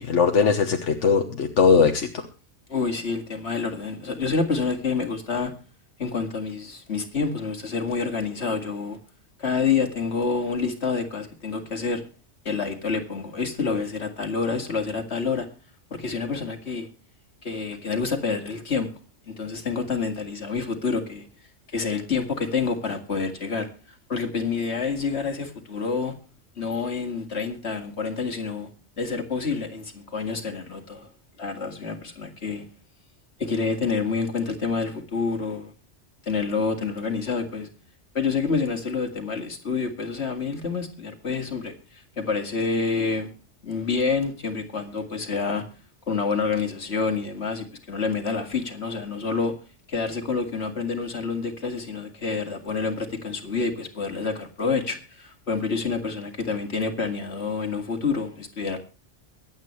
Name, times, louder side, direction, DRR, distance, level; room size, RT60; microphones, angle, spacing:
voice 1, 0.0-2.1, left 5 dB, 85° left, 1.5 m, -20 dB
voice 2, 2.7-5.5 6.0-9.0 9.4-12.0 12.5-15.5 15.9-16.9 17.4-18.9 19.3-21.3 21.7-23.7 24.1-26.1 26.6-28.7 29.0-31.1 31.4-32.6 33.4-35.7 36.2-37.7 38.1-43.3 43.6-45.7 46.1-49.5 49.9-58.8, left 4 dB, 65° left, 2.4 m, -28 dB
24.0 x 8.9 x 3.2 m
omnidirectional pair, 1.2 m